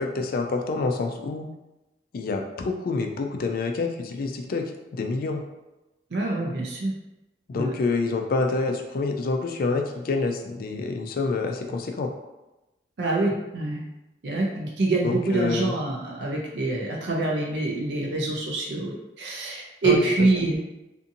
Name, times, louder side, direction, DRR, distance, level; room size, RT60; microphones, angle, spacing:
voice 1, 0.0-1.5 2.1-4.6 4.9-5.4 7.5-12.1 15.0-15.7 19.8-20.0, left 3 dB, 55° left, 4 dB, 0.3 m, -27 dB
voice 2, 6.1-6.9 7.5-7.7 13.0-13.8 14.2-20.6, right 2 dB, 70° right, -3 dB, 0.5 m, -25 dB
2.6 x 2.6 x 2.6 m, 1.0 s
head